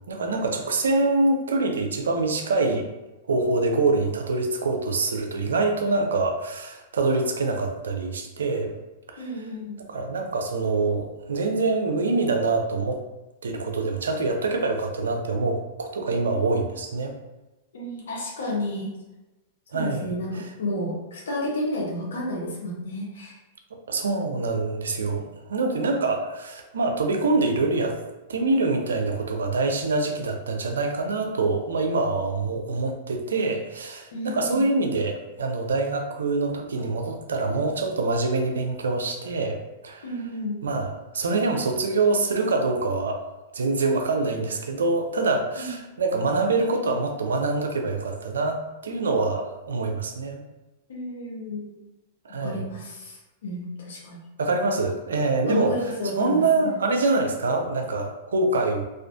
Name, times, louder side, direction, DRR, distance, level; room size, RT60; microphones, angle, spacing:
voice 1, 0.1-2.9 3.2-8.7 9.1-9.3 9.8-13.0 13.4-17.2 19.7-20.1 23.9-28.0 28.3-40.1 40.6-50.4 52.2-52.7 54.4-58.9, right 3 dB, 85° right, 4 dB, 0.4 m, -25 dB
voice 2, 9.2-9.8 17.7-18.9 19.7-23.4 34.1-34.7 40.0-40.6 45.6-45.8 50.9-51.8 52.4-53.2 53.4-54.2 55.4-56.7, left 1 dB, 80° left, -3 dB, 0.6 m, -31 dB
2.4 x 2.4 x 2.3 m, 1.0 s
hypercardioid pair, 110°, 0 cm